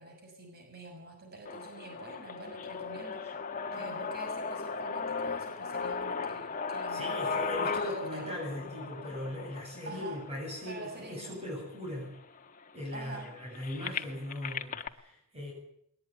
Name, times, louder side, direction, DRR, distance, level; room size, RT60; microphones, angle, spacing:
voice 1, 0.0-3.3 3.7-7.2 7.8-8.3 9.8-10.2 10.7-11.3 12.9-13.3, right 2 dB, 45° right, 2 dB, 6.5 m, -46 dB
sound 1, 1.4-11.4 12.1-12.2 12.4-14.9, left 5 dB, 35° left, 1.2 m, -37 dB
voice 2, 6.9-12.2 12.7-15.5, left 1 dB, 30° right, -1 dB, 7.8 m, -39 dB
20.5 x 20.0 x 9.3 m, 0.71 s
head